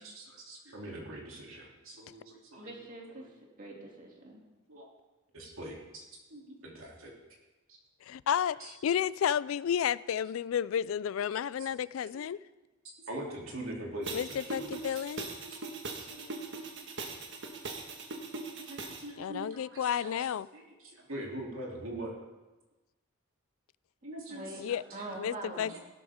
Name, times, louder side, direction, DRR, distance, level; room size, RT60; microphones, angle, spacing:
voice 1, 0.0-2.7 3.2-3.3 4.7-4.9 5.3-6.0 6.3-7.1 7.7-7.8 8.6-8.7 11.6-11.7 12.1-12.3 13.1-15.0 15.4-15.6 16.0-16.3 18.6-20.2 20.5-22.2 24.0-25.2 25.7-25.8, right 1 dB, 75° right, -2 dB, 3.1 m, -43 dB
voice 2, 2.5-3.2 3.6-4.4 24.3-24.6 24.9-25.8, right 2 dB, 40° right, -1 dB, 2.8 m, -43 dB
voice 3, 8.1-8.6 8.8-12.4 14.1-15.3 19.2-20.5 24.6-24.8 25.1-25.7, left 8 dB, 70° left, 19 dB, 0.3 m, -31 dB
sound 1, 14.0-19.0, right 3 dB, 60° right, 1.7 m, -40 dB
16.0 x 12.5 x 3.7 m, 1.1 s
head